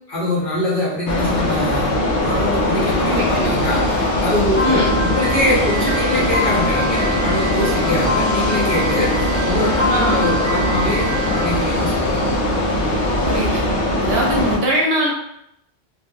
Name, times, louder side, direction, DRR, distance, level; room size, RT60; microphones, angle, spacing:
voice 1, 0.1-1.9 2.2-11.1 11.3-12.2, left 1 dB, 55° left, -6 dB, 1.0 m, -23 dB
sound 1, 1.1-14.6, left 1 dB, 80° left, 0.9 m, -20 dB
voice 2, 3.1-3.6 4.6-5.0 9.9-10.2 13.2-13.6 14.0-15.1, right 1 dB, 70° right, -2 dB, 0.8 m, -21 dB
Piano, 4.6-11.5, left 1 dB, 40° right, 0.4 m, -26 dB
2.9 x 2.1 x 2.3 m, 0.76 s
omnidirectional pair, 1.1 m